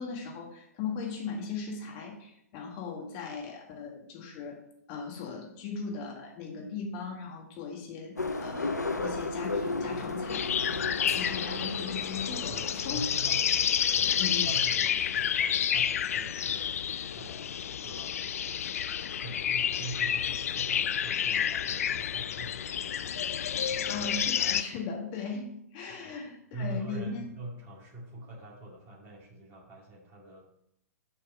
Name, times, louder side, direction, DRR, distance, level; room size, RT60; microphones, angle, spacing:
voice 1, 0.0-4.6 4.9-10.6 11.0-13.3 14.2-14.5 23.9-27.3, left 5 dB, 35° left, 1 dB, 1.9 m, -38 dB
sound 1, 8.2-14.6, left 3 dB, 85° left, 0.8 m, -35 dB
sound 2, 10.3-24.6, left 9 dB, 60° left, 0.4 m, -30 dB
sound 3, 11.1-14.3 16.3-16.4, right 2 dB, 70° right, 1.3 m, -51 dB
voice 2, 11.2-11.6 12.5-13.6 13.9-16.7 17.1-18.3 19.2-24.1 26.0-26.2 26.5-30.4, right 2 dB, 25° right, -2 dB, 2.1 m, -44 dB
6.9 x 5.5 x 5.3 m, 0.77 s
figure-of-eight pair, 115°, 9 cm